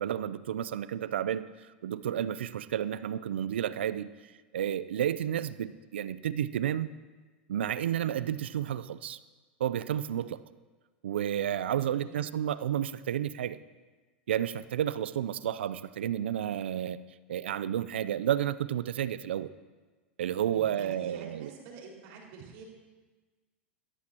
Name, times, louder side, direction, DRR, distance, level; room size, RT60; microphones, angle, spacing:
voice 1, 0.0-1.5 1.8-4.1 4.5-6.9 7.5-9.2 9.6-10.4 11.0-13.6 14.3-17.0 17.3-19.5 20.2-21.5, right 10 dB, 75° right, 15 dB, 0.6 m, -31 dB
voice 2, 11.8-12.2 20.5-22.6, right 5 dB, 55° right, -1 dB, 5.2 m, -48 dB
21.5 x 14.0 x 3.0 m, 1.3 s
hypercardioid pair, 95°, 6 cm